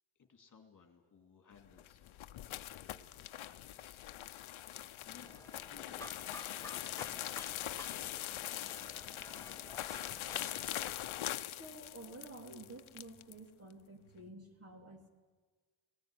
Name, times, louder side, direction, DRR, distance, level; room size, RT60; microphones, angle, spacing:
voice 1, 0.2-2.2 2.5-7.7, left 5 dB, 40° left, 5 dB, 2.5 m, -63 dB
sound 1, 1.6-13.4, left 13 dB, 85° left, 0.8 m, -42 dB
sound 2, 5.2-10.9, left 2 dB, 5° left, 1.3 m, -52 dB
voice 2, 11.6-15.1, right 2 dB, 30° right, 3 dB, 3.1 m, -51 dB
18.5 x 18.5 x 10.0 m, 1.4 s
wide cardioid pair, 125°, 47 cm